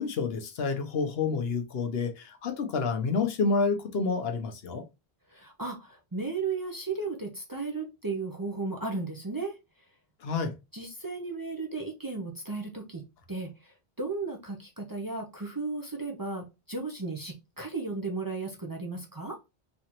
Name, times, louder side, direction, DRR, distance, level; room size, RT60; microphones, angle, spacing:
voice 1, 0.0-4.8 10.2-10.5, left 4 dB, 75° left, 1.0 m, -29 dB
voice 2, 5.3-9.6 10.7-13.0 13.3-19.4, right 3 dB, 25° right, 0.6 m, -35 dB
4.1 x 2.9 x 2.9 m
omnidirectional pair, 1.1 m